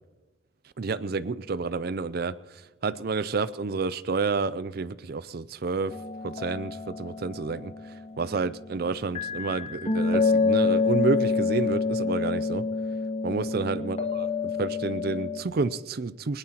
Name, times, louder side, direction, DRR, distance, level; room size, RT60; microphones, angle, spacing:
voice 1, 0.8-2.3 2.8-5.9 6.2-7.7 8.2-12.6 13.2-14.3 14.6-16.4, right 4 dB, 50° right, 17 dB, 0.4 m, -29 dB
sound 1, 5.9-8.7 9.2-15.4, left 4 dB, 30° left, 0.9 m, -27 dB
20.5 x 19.0 x 2.9 m, 1.1 s
head